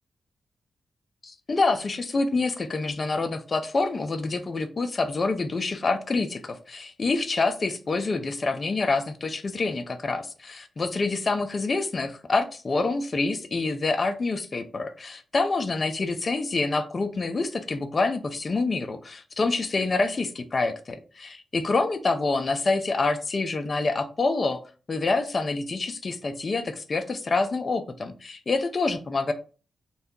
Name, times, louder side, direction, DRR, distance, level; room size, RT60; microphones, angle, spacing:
voice 1, 1.2-21.0 21.5-24.6 24.9-29.3, left 3 dB, 30° left, 7 dB, 0.3 m, -27 dB
2.7 x 2.2 x 3.5 m, 0.36 s
wide cardioid pair, 160°, 0 cm